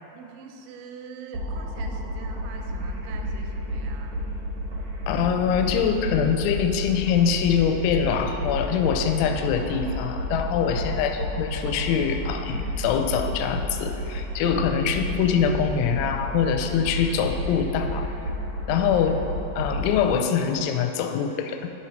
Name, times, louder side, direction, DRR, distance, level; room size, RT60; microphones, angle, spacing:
voice 1, 0.1-4.2 10.6-10.9, right 6 dB, 85° right, 4 dB, 3.1 m, -44 dB
sound 1, 1.3-20.2, equal, 65° right, 1.5 m, -31 dB
voice 2, 5.1-18.1 18.7-19.3 19.6-21.7, left 7 dB, 90° left, 6 dB, 3.0 m, -24 dB
10.5 x 4.3 x 5.1 m, 2.9 s
omnidirectional pair, 5.3 m